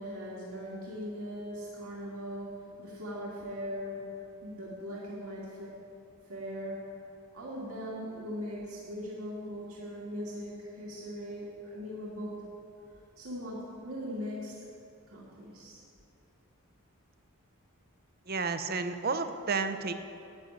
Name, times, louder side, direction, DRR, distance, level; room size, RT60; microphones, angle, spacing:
voice 1, 0.0-5.8 6.3-6.9 7.3-12.4 13.2-14.5 15.1-15.8, equal, 75° right, -6 dB, 2.1 m, -40 dB
voice 2, 18.3-19.9, right 4 dB, 45° right, 9 dB, 0.7 m, -31 dB
11.0 x 7.9 x 9.1 m, 2.7 s
head